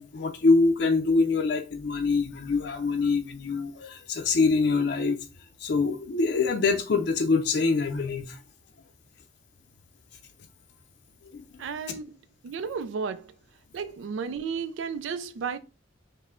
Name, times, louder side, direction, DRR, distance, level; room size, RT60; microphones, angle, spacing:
voice 1, 0.0-5.2 5.6-8.4 11.2-11.4, left 4 dB, 60° left, 0.5 m, -24 dB
voice 2, 11.6-12.2 12.4-13.3 13.7-15.6, right 5 dB, 90° right, 0.4 m, -33 dB
5.4 x 2.1 x 3.6 m
head